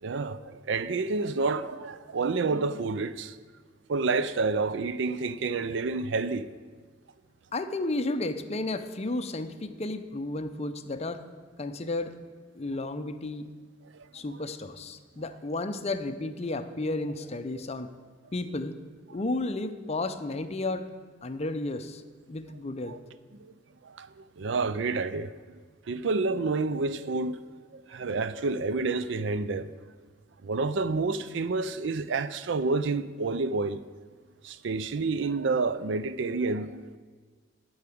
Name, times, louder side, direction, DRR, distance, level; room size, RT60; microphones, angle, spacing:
voice 1, 0.0-3.4 3.9-6.5 13.9-14.1 22.9-23.0 23.4-23.5 23.8-25.3 25.9-27.4 27.7-29.8 30.4-33.8 34.4-37.0, right 3 dB, 70° right, 0.5 m, -29 dB
voice 2, 7.5-11.2 11.6-12.2 12.5-13.5 14.1-17.9 18.3-18.7 19.1-20.9 21.2-22.0 22.3-23.0, left 2 dB, 35° left, 0.6 m, -32 dB
12.0 x 4.7 x 8.4 m
head